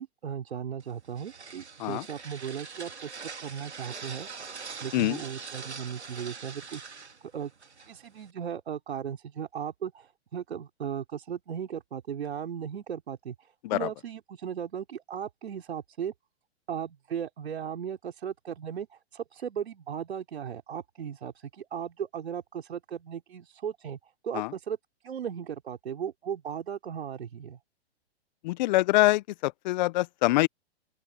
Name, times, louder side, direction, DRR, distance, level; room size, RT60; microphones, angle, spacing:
voice 1, 0.0-4.3 4.8-6.9 7.3-7.5 7.9-16.1 16.7-24.8 25.0-27.6, right 8 dB, 70° right, 3.9 m, -37 dB
sound 1, 0.8-8.3, right 5 dB, 90° right, 3.0 m, -43 dB
voice 2, 28.4-30.5, left 18 dB, 45° left, 1.0 m, -24 dB
open air
hypercardioid pair, 120°, 33 cm